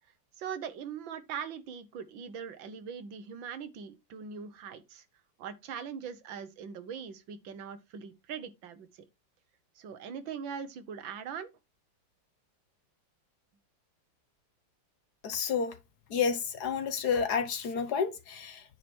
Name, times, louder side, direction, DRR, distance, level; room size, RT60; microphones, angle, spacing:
voice 1, 0.4-5.1 5.4-8.9 9.8-11.5, right 7 dB, 80° right, 1.8 m, -41 dB
voice 2, 15.2-15.8 16.1-18.6, left 6 dB, 60° left, 1.5 m, -30 dB
9.1 x 4.7 x 4.4 m
omnidirectional pair, 2.1 m